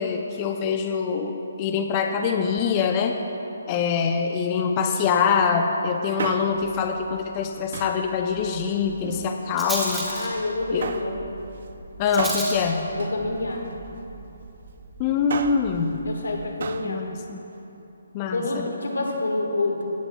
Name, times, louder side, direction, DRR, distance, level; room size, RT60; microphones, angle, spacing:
voice 1, 0.0-3.2 3.7-10.1 10.7-10.9 12.0-12.9 15.0-16.0 16.8-17.4 18.1-18.7, left 6 dB, 25° left, 4 dB, 0.4 m, -24 dB
Male speech man speaking, 6.0-6.8 7.7-8.1 8.9-9.7 10.8-11.2 12.2-13.8 15.1-15.7 16.6-16.9 17.2-17.3, right 5 dB, 55° right, 0.4 m, -33 dB
Rattle, 6.5-16.5, right 1 dB, 5° right, 1.4 m, -38 dB
voice 2, 10.0-11.2 12.9-13.7 16.0-17.1 18.3-19.9, left 2 dB, 85° left, 0 dB, 1.5 m, -28 dB
16.0 x 8.0 x 2.3 m, 2.9 s
figure-of-eight pair, 150°, 0 cm